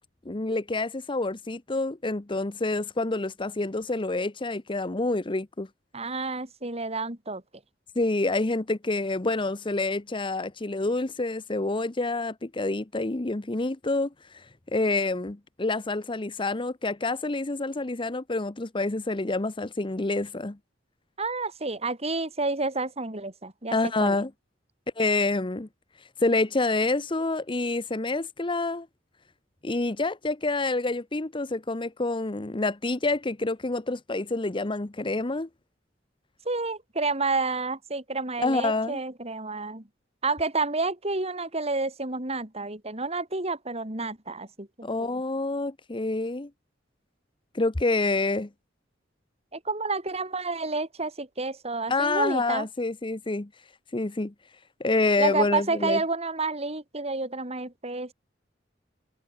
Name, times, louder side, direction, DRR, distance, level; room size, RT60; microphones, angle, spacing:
voice 1, 0.3-5.7 8.0-14.4 14.7-20.6 23.7-24.3 25.0-25.7 26.2-28.9 29.6-35.5 38.4-39.0 44.8-46.5 47.5-48.5 51.9-53.5 53.9-54.3 54.8-56.0, left 2 dB, 25° left, 0.9 m, -27 dB
voice 2, 5.9-7.4 21.2-24.2 36.4-39.8 40.2-45.2 49.5-52.7 55.2-58.1, right 3 dB, 35° right, 4.7 m, -30 dB
head